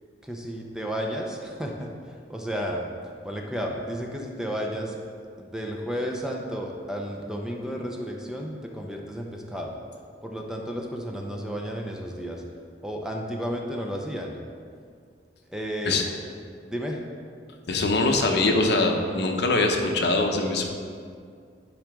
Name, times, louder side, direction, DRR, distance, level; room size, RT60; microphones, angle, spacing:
voice 1, 0.2-2.9 3.2-5.0 5.4-9.7 10.2-12.4 12.8-14.3 15.5-16.0 16.7-17.0 20.5-20.6, equal, 5° right, 0 dB, 0.6 m, -32 dB
voice 2, 17.7-20.6, left 2 dB, 65° left, 3 dB, 0.8 m, -23 dB
10.5 x 4.9 x 3.6 m, 2.2 s
head